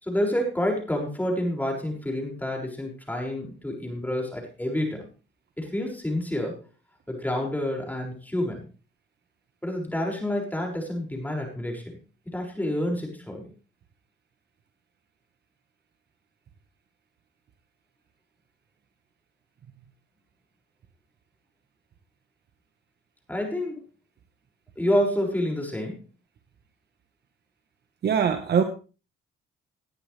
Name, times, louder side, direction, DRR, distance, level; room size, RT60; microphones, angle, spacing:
voice 1, 0.0-5.1 5.6-6.6 7.1-8.7 9.6-11.9 12.2-13.5 23.3-23.8 24.8-26.0, left 1 dB, 10° left, 1 dB, 6.5 m, -28 dB
voice 2, 28.0-28.6, right 7 dB, 55° right, 7 dB, 1.5 m, -22 dB
19.5 x 10.0 x 3.5 m, 0.35 s
cardioid pair, 90°, 20 cm